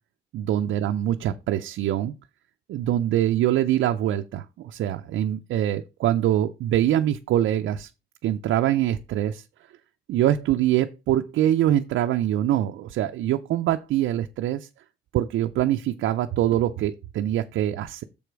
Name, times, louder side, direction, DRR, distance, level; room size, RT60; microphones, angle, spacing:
voice 1, 0.3-2.1 2.7-7.9 8.2-9.4 10.1-14.7 15.1-18.0, right 12 dB, 75° right, 0.5 m, -24 dB
6.9 x 5.0 x 4.6 m
cardioid pair, 90°, 20 cm